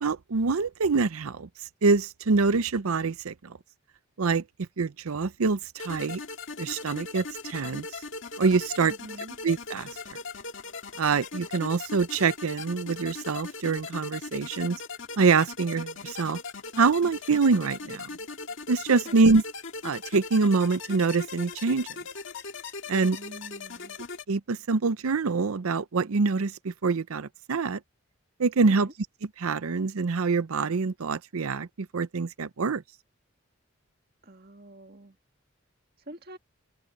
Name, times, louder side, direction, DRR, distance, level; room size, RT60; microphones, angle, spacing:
voice 1, 0.0-1.5 1.8-3.6 4.2-4.4 4.8-6.2 6.6-7.9 8.4-8.9 9.4-10.2 11.0-14.8 15.2-16.4 16.8-18.1 18.7-19.4 19.8-21.9 22.9-23.2 24.3-27.8 28.4-28.9 29.4-31.7 31.9-32.8, right 4 dB, 80° right, 0.6 m, -25 dB
sound 1, 5.8-24.2, left 4 dB, 60° left, 2.1 m, -39 dB
voice 2, 8.9-9.4 19.0-19.3 23.0-24.0 28.7-28.9 34.2-35.2 36.1-36.4, right 2 dB, 45° right, 1.9 m, -45 dB
open air
head